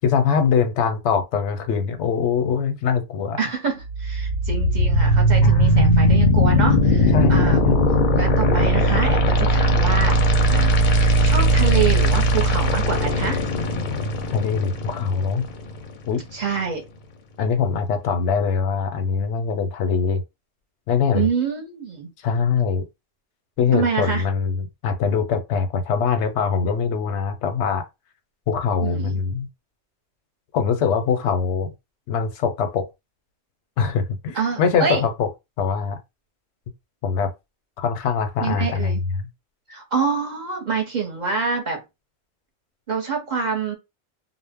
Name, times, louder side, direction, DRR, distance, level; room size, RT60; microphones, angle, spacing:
voice 1, 0.0-3.4 5.4-6.1 7.1-7.8 14.3-15.5 16.1-16.2 17.4-20.2 20.9-21.3 22.2-22.8 23.6-27.8 28.5-29.5 30.5-31.7 32.1-32.9 33.8-35.3 35.6-36.0 37.0-37.3 37.8-38.9 39.2-39.3, left 6 dB, 90° left, 0.9 m, -22 dB
voice 2, 3.4-7.7 8.1-10.2 10.5-13.4 16.3-16.8 21.1-22.1 23.7-24.2 28.8-29.2 34.3-35.0 38.4-39.0 39.7-41.8 42.9-43.7, right 5 dB, 50° right, 0.7 m, -26 dB
sound 1, 3.8-15.8, equal, 55° left, 0.6 m, -18 dB
2.1 x 2.0 x 3.4 m
omnidirectional pair, 1.1 m